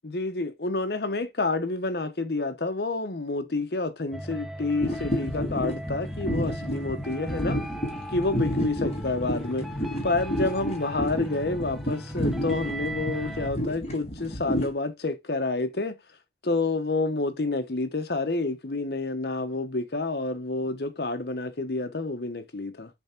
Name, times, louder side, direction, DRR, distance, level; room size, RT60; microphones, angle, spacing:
voice 1, 0.0-7.6 8.1-9.7 10.0-16.0 16.4-22.9, left 3 dB, 60° left, 0.9 m, -29 dB
sound 1, 4.1-13.5, right 1 dB, ahead, 0.6 m, -38 dB
sound 2, 4.8-14.7, equal, 35° left, 1.8 m, -31 dB
7.1 x 3.5 x 4.4 m
head